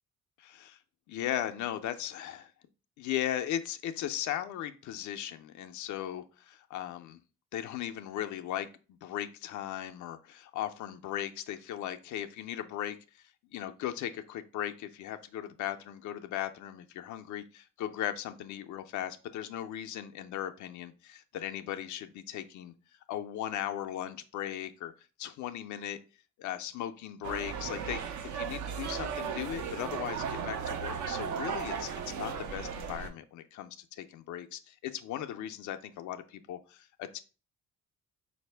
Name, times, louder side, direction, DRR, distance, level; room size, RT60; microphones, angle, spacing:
voice 1, 0.4-0.8 1.1-2.4 3.0-7.2 7.5-8.7 9.0-13.2 13.5-20.9 21.4-22.7 23.1-24.9 25.2-26.0 26.4-37.2, left 11 dB, 75° left, 8 dB, 0.5 m, -37 dB
sound 1, 27.2-33.1, right 7 dB, 80° right, 0.6 m, -36 dB
4.1 x 2.6 x 3.2 m, 0.35 s
cardioid pair, 90°, 30 cm